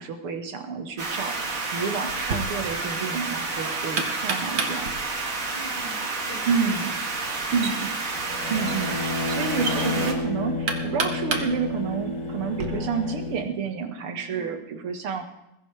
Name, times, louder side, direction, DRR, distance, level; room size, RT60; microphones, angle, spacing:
voice 1, 0.0-4.9 6.5-7.0 7.5-7.9 8.5-15.2, right 5 dB, 90° right, 6 dB, 2.5 m, -29 dB
sound 1, 1.0-10.1, right 3 dB, 40° right, 2.1 m, -30 dB
Knock, 2.1-12.7, right 4 dB, 60° right, 2.1 m, -34 dB
voice 2, 5.5-7.6 14.1-14.5, right 1 dB, 55° left, -2 dB, 5.4 m, -45 dB
sound 2, 8.1-13.4, left 3 dB, 80° left, 4.3 m, -31 dB
21.0 x 15.5 x 3.4 m, 0.87 s
omnidirectional pair, 2.4 m